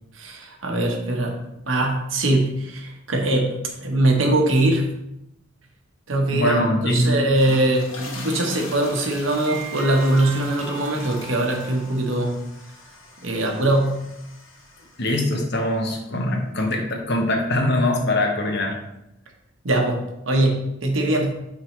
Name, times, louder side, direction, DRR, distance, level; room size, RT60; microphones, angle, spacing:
voice 1, 0.2-4.9 6.1-12.4 13.2-14.0 19.6-21.3, right 1 dB, 80° right, 2 dB, 1.1 m, -22 dB
voice 2, 6.3-7.2 15.0-18.8, left 1 dB, 60° left, 2 dB, 1.1 m, -22 dB
sound 1, 7.3-15.5, left 2 dB, 85° left, 1.4 m, -41 dB
sound 2, 9.4-13.0, right 6 dB, 35° right, 0.9 m, -39 dB
8.8 x 3.8 x 3.1 m, 0.86 s
head